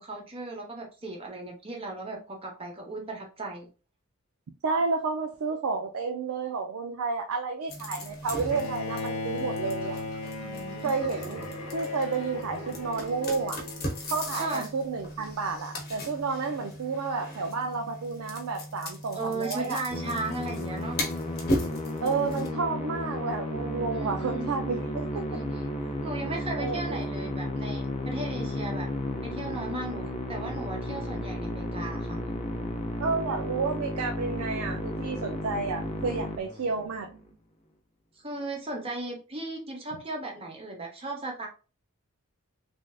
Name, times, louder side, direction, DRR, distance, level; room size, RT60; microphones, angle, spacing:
voice 1, 0.0-3.7 10.4-10.9 14.3-14.7 19.1-21.0 23.9-24.6 25.3-25.6 26.0-28.9 29.2-32.2 36.9-37.3 38.2-41.5, right 2 dB, 25° right, 0 dB, 0.8 m, -36 dB
voice 2, 4.6-10.0 10.8-13.6 14.1-19.8 22.0-25.4 26.6-27.0 33.0-37.1, right 4 dB, 80° right, 3 dB, 0.4 m, -31 dB
sound 1, 7.7-22.5, left 1 dB, 45° left, 0.8 m, -37 dB
Bowed string instrument, 8.5-14.6, left 3 dB, 80° left, 0.8 m, -37 dB
Musical instrument, 19.9-37.0, left 1 dB, 30° left, 0.5 m, -33 dB
3.3 x 2.6 x 2.3 m, 0.34 s
head